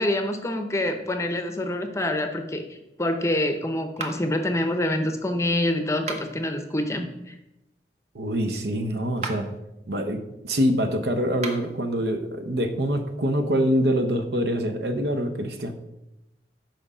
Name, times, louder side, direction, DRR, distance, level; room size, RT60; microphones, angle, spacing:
voice 1, 0.0-7.4, left 1 dB, 15° left, 6 dB, 0.7 m, -26 dB
sound 1, 4.0-4.5 5.9-6.5 9.1-9.6 11.3-11.8, right 3 dB, 40° right, 1.0 m, -36 dB
voice 2, 8.1-9.5 9.9-10.2 10.4-15.7, equal, 65° right, 7 dB, 0.8 m, -25 dB
7.8 x 5.3 x 4.9 m, 0.90 s
head